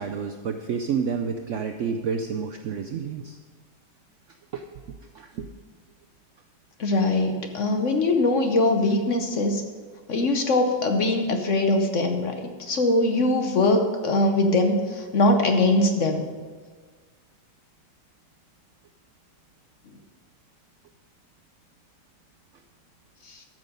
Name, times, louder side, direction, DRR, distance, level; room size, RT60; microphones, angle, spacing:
voice 1, 0.0-3.4 4.5-4.6 5.1-5.5, right 6 dB, 90° right, 6 dB, 0.6 m, -29 dB
voice 2, 6.8-9.6 10.1-16.3, left 2 dB, 55° left, 5 dB, 1.0 m, -22 dB
13.0 x 6.1 x 5.2 m, 1.5 s
omnidirectional pair, 1.9 m